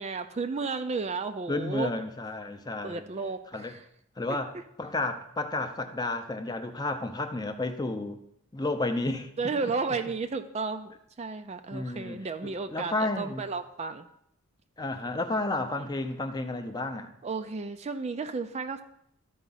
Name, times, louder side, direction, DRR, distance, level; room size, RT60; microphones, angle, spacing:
voice 1, 0.0-1.9 2.8-3.8 9.4-10.9 11.2-14.1 17.2-18.8, right 4 dB, 30° right, 8 dB, 0.3 m, -33 dB
voice 2, 1.5-3.0 3.5-3.7 4.2-8.2 8.5-9.3 11.7-13.5 14.8-17.1, left 2 dB, 20° left, 6 dB, 0.6 m, -32 dB
13.0 x 4.6 x 4.0 m, 0.75 s
head